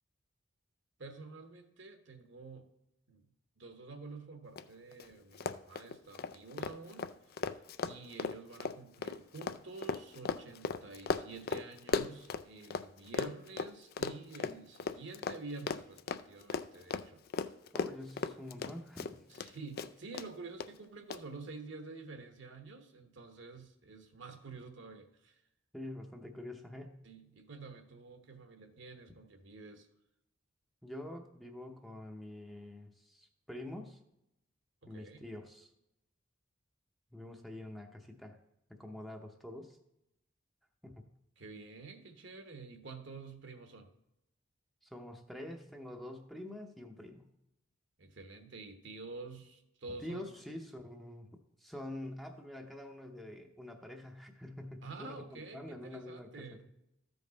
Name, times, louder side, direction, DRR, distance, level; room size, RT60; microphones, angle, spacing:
voice 1, 1.0-2.7 3.1-3.3 3.6-7.1 7.8-17.2 19.3-25.4 27.0-29.9 34.8-35.2 41.4-43.9 48.0-50.3 54.8-56.7, right 3 dB, 60° right, 6 dB, 1.0 m, -49 dB
Run, 4.6-4.7 4.9-5.1 5.3-12.9 13.1-19.5 19.8-20.3 20.6-20.7 21.1-21.2, left 5 dB, 50° left, 0.4 m, -36 dB
voice 2, 17.7-19.2 25.7-27.0 30.8-34.0 34.9-35.7 37.1-38.4 38.7-39.8 40.8-41.0 44.8-47.3 50.0-51.3 51.6-56.6, left 1 dB, ahead, 2 dB, 0.7 m, -46 dB
13.5 x 5.3 x 4.0 m, 0.85 s
head